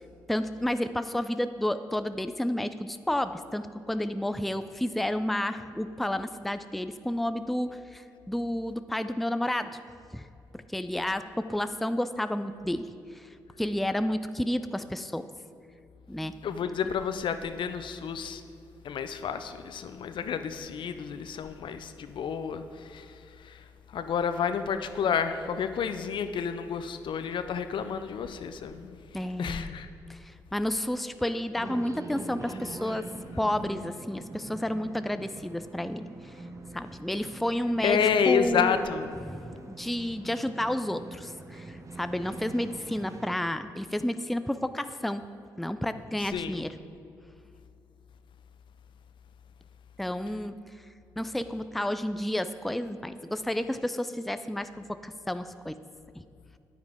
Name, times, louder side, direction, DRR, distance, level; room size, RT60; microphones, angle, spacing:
voice 1, 0.3-9.8 10.1-10.3 10.5-12.9 13.2-13.3 13.6-15.3 16.1-16.4 29.1-29.7 30.1-30.2 30.5-33.1 33.4-36.1 36.7-38.8 39.2-45.2 45.6-46.7 50.0-50.5 51.2-55.8, left 1 dB, ahead, 11 dB, 0.4 m, -31 dB
voice 2, 16.4-18.4 18.8-29.0 29.4-29.9 37.8-39.1 46.2-46.6, left 7 dB, 60° left, 10 dB, 0.6 m, -30 dB
sound 1, 31.6-43.4, right 3 dB, 35° right, 1.0 m, -44 dB
9.4 x 9.3 x 3.6 m, 2.4 s
hypercardioid pair, 40°, 9 cm